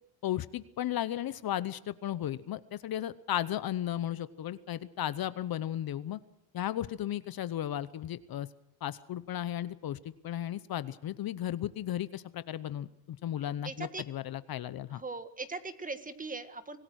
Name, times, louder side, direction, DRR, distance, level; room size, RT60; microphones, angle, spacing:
voice 1, 0.2-6.2 6.5-8.5 8.8-15.0, left 12 dB, 50° left, 15 dB, 0.9 m, -35 dB
voice 2, 13.6-14.0 14.9-16.8, right 3 dB, 20° right, 10 dB, 1.6 m, -39 dB
25.5 x 18.0 x 6.3 m, 0.76 s
cardioid pair, 120°, 45 cm